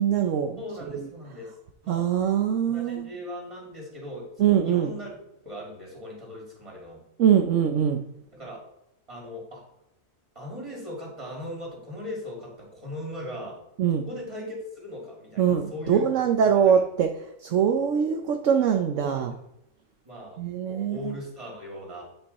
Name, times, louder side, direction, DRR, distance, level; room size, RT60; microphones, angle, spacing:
voice 1, 0.0-0.6 0.9-1.1 1.9-3.1 4.4-4.9 7.2-8.1 13.8-14.1 15.4-17.1 17.4-19.3 20.4-21.2, right 8 dB, 65° right, 5 dB, 1.0 m, -23 dB
voice 2, 0.6-1.6 1.8-2.0 2.6-5.2 5.4-7.0 8.3-8.7 9.1-9.6 10.3-13.6 14.0-16.0 16.4-16.8 19.0-19.2 20.0-22.0, left 1 dB, 20° right, -3 dB, 2.9 m, -39 dB
9.9 x 5.4 x 4.2 m, 0.84 s
omnidirectional pair, 1.5 m